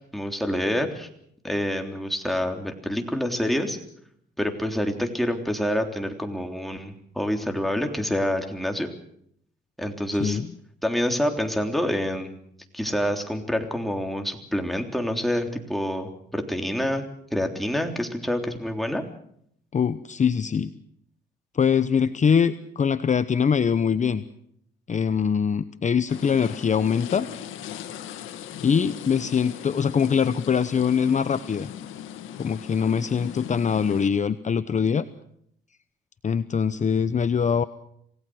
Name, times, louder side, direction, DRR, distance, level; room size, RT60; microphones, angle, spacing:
voice 1, 0.1-1.1 1.4-3.8 4.4-8.9 9.8-10.4 10.8-12.3 12.7-17.0 17.3-19.0, equal, ahead, 3 dB, 3.5 m, -27 dB
voice 2, 19.7-20.7 21.5-24.2 24.9-27.3 28.6-31.7 32.4-35.0 36.2-37.6, left 7 dB, 40° left, 12 dB, 0.9 m, -23 dB
sound 1, 26.1-34.1, left 10 dB, 85° left, 1.9 m, -39 dB
27.0 x 17.5 x 6.4 m, 0.70 s
cardioid pair, 90°, 20 cm